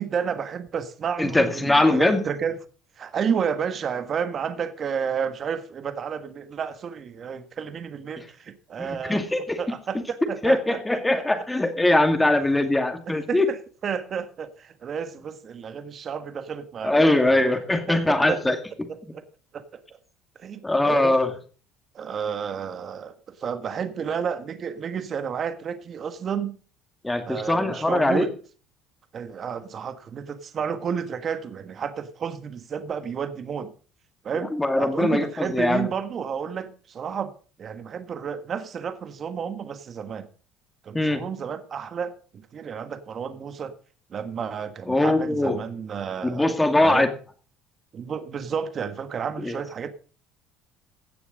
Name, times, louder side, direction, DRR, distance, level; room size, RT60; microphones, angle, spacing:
voice 1, 0.0-2.6 3.0-9.2 9.6-11.4 13.1-13.6 13.8-17.5 17.9-18.4 18.9-19.2 19.5-19.6 20.4-21.2 21.9-23.1 23.4-26.6 27.2-28.3 29.1-33.7 34.2-34.5 34.8-37.3 37.6-40.3 40.8-43.7 44.1-46.5 46.8-47.1 47.9-49.9, right 7 dB, 40° right, 1.5 m, -31 dB
voice 2, 1.2-2.2 8.8-9.6 10.2-13.5 16.8-18.6 20.6-21.3 27.0-28.3 34.4-35.9 40.9-41.2 44.9-45.6 46.2-47.1 49.4-49.6, left 2 dB, 10° left, 2.3 m, -21 dB
16.5 x 7.1 x 5.1 m
supercardioid pair, 95°, 0 cm